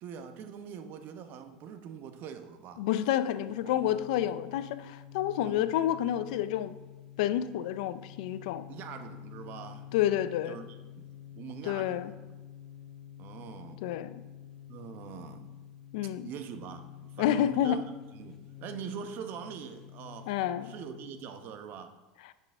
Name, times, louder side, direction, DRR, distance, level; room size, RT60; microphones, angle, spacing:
voice 1, 0.0-2.8 3.6-3.7 5.4-5.7 8.7-9.9 10.5-11.1 11.4-12.1 13.2-13.8 14.7-15.5 16.0-17.9 18.1-21.9, right 7 dB, 55° right, 0.9 m, -43 dB
voice 2, 2.8-6.8 7.2-8.6 9.9-10.6 11.6-12.1 13.8-14.2 15.9-16.3 17.2-17.8 20.3-20.7, left 11 dB, 75° left, 0.5 m, -29 dB
sound 1, 3.2-21.4, left 11 dB, 15° left, 1.4 m, -49 dB
10.0 x 6.1 x 3.5 m
supercardioid pair, 105°, 4 cm